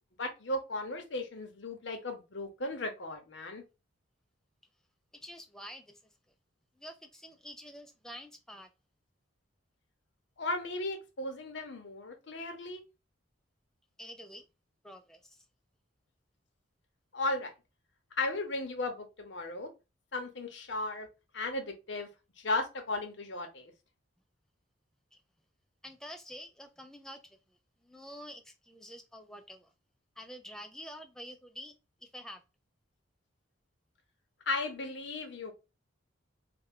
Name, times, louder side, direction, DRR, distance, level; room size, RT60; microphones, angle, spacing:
voice 1, 0.2-3.6 10.4-12.8 17.1-17.5 18.2-19.7 20.1-21.1 21.3-22.1 22.4-23.7 34.5-35.5, left 2 dB, 65° left, 0.8 m, -35 dB
voice 2, 5.1-6.1 6.8-8.7 14.0-14.5 14.8-15.4 25.1-25.2 25.8-29.7 30.2-31.7 32.0-32.4, equal, 5° left, 0.3 m, -48 dB
3.3 x 2.2 x 3.5 m
head